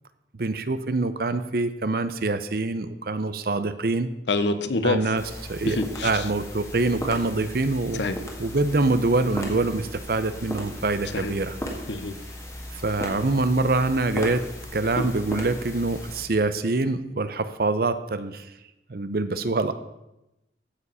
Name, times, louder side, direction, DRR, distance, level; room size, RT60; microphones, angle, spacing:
voice 1, 0.4-4.1 4.8-5.2 5.5-8.0 8.4-11.6 12.7-14.4 14.7-18.5 18.9-19.7, right 3 dB, 55° right, 12 dB, 0.6 m, -25 dB
voice 2, 4.3-5.0 5.7-6.2 8.0-8.2 11.1-11.3 11.9-12.1 15.0-15.1, left 2 dB, 80° left, 11 dB, 0.8 m, -26 dB
sound 1, 5.2-16.2, equal, 15° left, 1.7 m, -36 dB
14.5 x 5.2 x 5.5 m, 0.93 s
head